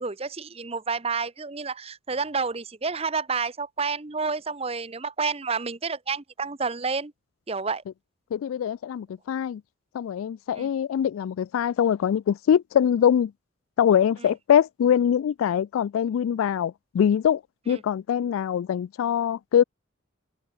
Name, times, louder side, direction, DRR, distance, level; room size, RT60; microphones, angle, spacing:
voice 1, 0.0-7.1 7.5-7.8 10.5-10.7 14.2-14.3 17.7-17.8, right 4 dB, 30° right, 0.8 m, -29 dB
voice 2, 8.3-9.6 9.9-13.3 13.8-17.4 17.7-19.6, left 9 dB, 90° left, 0.3 m, -23 dB
open air
head